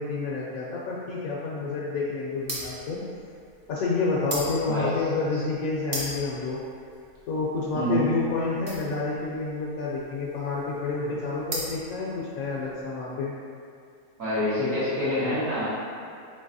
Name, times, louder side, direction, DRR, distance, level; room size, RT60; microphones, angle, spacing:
voice 1, 0.0-3.0 3.7-6.6 7.3-13.3, left 3 dB, 70° left, -5 dB, 1.0 m, -29 dB
sound 1, 2.4-12.7, right 1 dB, 40° right, 0.5 m, -38 dB
voice 2, 14.2-15.7, equal, 60° right, -11 dB, 1.7 m, -26 dB
4.0 x 3.9 x 2.6 m, 2.3 s
omnidirectional pair, 1.6 m